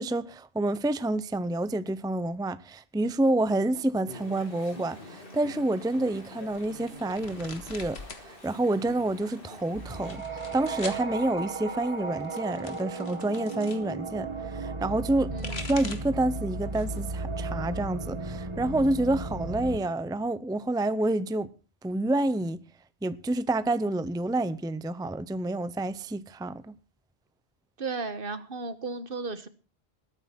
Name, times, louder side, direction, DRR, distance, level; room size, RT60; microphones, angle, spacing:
voice 1, 0.0-21.5 21.8-22.6 23.0-26.7, right 2 dB, 5° right, 0.6 m, -28 dB
Chatter / Stream, 4.0-10.2, left 1 dB, 60° left, 3.5 m, -46 dB
sound 1, 6.5-8.3 8.6-9.2 9.9-11.0 12.1-13.8 15.1-16.2 16.6-17.1 17.5-18.4, left 3 dB, 85° left, 2.2 m, -43 dB
sound 2, 9.7-19.8, right 3 dB, 30° right, 1.3 m, -35 dB
voice 2, 15.3-15.6 27.8-29.5, right 3 dB, 60° right, 1.5 m, -34 dB
20.5 x 9.7 x 4.4 m
omnidirectional pair, 1.1 m